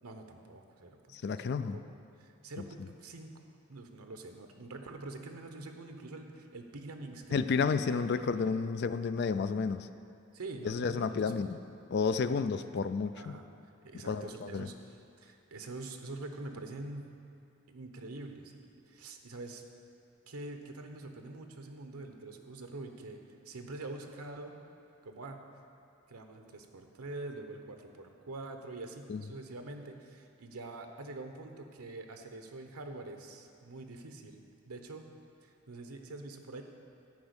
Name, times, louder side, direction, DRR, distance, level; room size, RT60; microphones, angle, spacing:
voice 1, 0.0-1.8 2.2-3.4 3.7-8.6 10.3-11.5 13.1-13.5 13.8-17.1 17.7-19.6 20.3-23.2 23.4-24.5 25.0-25.4 26.1-35.1 35.4-36.6, right 2 dB, 90° right, 5 dB, 0.9 m, -45 dB
voice 2, 1.1-1.8 2.6-2.7 7.3-9.9 10.6-11.6 11.9-13.4 14.1-14.7 29.1-29.2, left 5 dB, 50° left, 12 dB, 0.3 m, -31 dB
10.5 x 5.2 x 8.1 m, 2.5 s
head